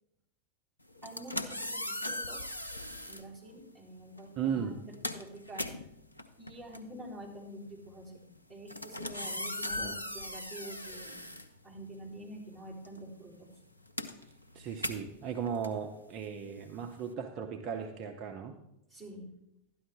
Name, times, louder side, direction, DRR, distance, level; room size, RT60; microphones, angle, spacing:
sound 1, 0.9-3.3 4.2-4.4 4.7-12.2 12.5-17.1, left 1 dB, 85° left, 0.8 m, -40 dB
voice 1, 1.0-2.5 3.1-5.7 6.4-8.2 8.5-11.2 11.6-13.5 18.9-19.3, right 1 dB, ahead, -7 dB, 4.0 m, -47 dB
voice 2, 4.4-4.8 9.8-10.0 14.2-18.5, right 7 dB, 35° right, 5 dB, 0.8 m, -37 dB
12.5 x 10.0 x 3.6 m, 0.80 s
figure-of-eight pair, 90°, 0 cm